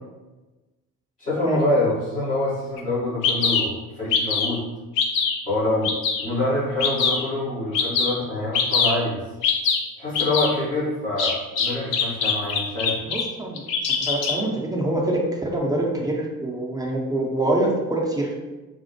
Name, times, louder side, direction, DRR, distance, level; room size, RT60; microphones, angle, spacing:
voice 1, 1.2-4.6 5.4-5.9 6.2-9.2 10.0-13.0, left 1 dB, 90° left, -12 dB, 1.2 m, -25 dB
Bird vocalization bird call bird song, 2.8-2.9 3.2-3.6 4.1-4.6 5.0-5.4 5.8-6.2 6.8-7.2 7.7-8.1 8.5-8.9 9.4-9.8 10.1-10.5 11.2-13.2 13.6-14.3, left 6 dB, 60° left, 0.6 m, -22 dB
voice 2, 13.1-13.6 13.9-18.3, right 1 dB, 10° right, -2 dB, 0.5 m, -25 dB
4.2 x 2.0 x 2.9 m, 1.1 s
figure-of-eight pair, 50°, 45 cm